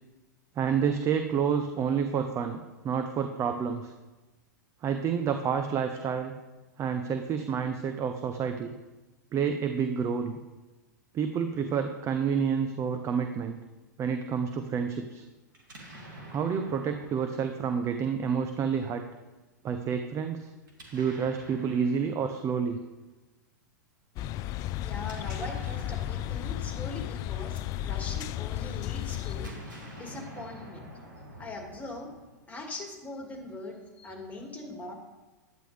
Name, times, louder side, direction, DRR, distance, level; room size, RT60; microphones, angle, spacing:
voice 1, 0.6-3.9 4.8-6.3 6.8-8.7 9.3-10.4 11.1-13.6 14.0-15.2 16.3-19.0 19.6-20.5 20.9-22.8, right 7 dB, 30° right, 7 dB, 0.7 m, -29 dB
Explosion, 15.5-18.6 20.6-22.9 24.8-28.2 29.2-32.6, equal, 85° right, 2.7 m, -48 dB
sound 1, 24.2-29.5, left 12 dB, 35° left, 0.4 m, -34 dB
voice 2, 24.8-30.9 31.4-32.1 32.5-34.9, left 2 dB, 15° left, 2 dB, 2.3 m, -41 dB
11.5 x 9.0 x 3.4 m, 1.2 s
hypercardioid pair, 105°, 10 cm